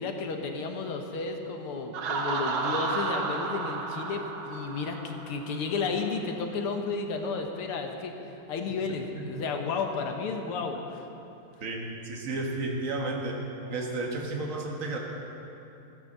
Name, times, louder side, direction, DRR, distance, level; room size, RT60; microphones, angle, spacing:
voice 1, 0.0-8.1 8.5-11.0, left 4 dB, 85° left, 3 dB, 2.0 m, -32 dB
Laughter, 1.9-5.6, right 4 dB, 70° right, 1.8 m, -32 dB
voice 2, 11.6-13.4 13.7-15.0, right 2 dB, 40° right, 0 dB, 1.7 m, -32 dB
14.0 x 9.9 x 6.6 m, 2.8 s
omnidirectional pair, 2.4 m